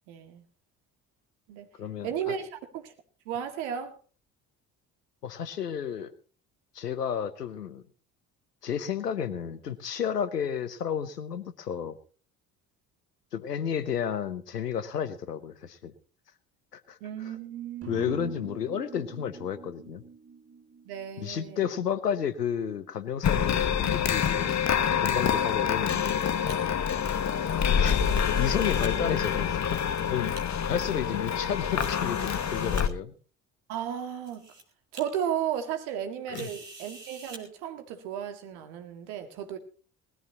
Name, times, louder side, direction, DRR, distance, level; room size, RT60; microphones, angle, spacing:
voice 1, 0.1-0.4 1.5-1.7 2.0-2.9 3.3-4.0 17.0-18.4 20.9-21.7 33.7-34.5 34.9-39.6, right 9 dB, 65° right, 2.2 m, -34 dB
voice 2, 1.8-2.4 5.2-6.1 6.7-7.8 8.6-12.0 13.3-15.9 16.7-17.3 17.9-20.0 21.2-24.6 25.0-26.3 27.8-28.0 28.4-30.4 30.7-33.1 36.3-36.5, left 8 dB, 85° left, 1.1 m, -32 dB
sound 1, 17.8-22.0, right 4 dB, 30° right, 2.0 m, -46 dB
sound 2, 23.2-32.9, left 8 dB, 35° left, 1.3 m, -26 dB
sound 3, 26.0-26.6 27.8-28.9 29.6-30.4 31.1-31.2 31.8-32.9 33.8-33.9 34.2-34.6 34.9-35.0 36.3-37.4, right 2 dB, 90° right, 2.0 m, -46 dB
20.0 x 14.0 x 3.0 m
figure-of-eight pair, 50°, 46 cm